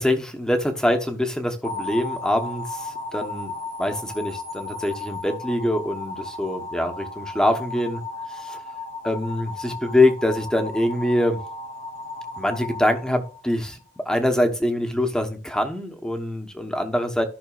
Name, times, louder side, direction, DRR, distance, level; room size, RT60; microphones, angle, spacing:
voice 1, 0.0-3.5 3.8-8.0 8.3-8.6 9.0-11.4 12.4-17.2, left 1 dB, 5° left, 4 dB, 1.0 m, -24 dB
sound 1, 1.6-13.8, left 2 dB, 90° right, 2.0 m, -35 dB
14.0 x 5.9 x 2.4 m, 0.39 s
head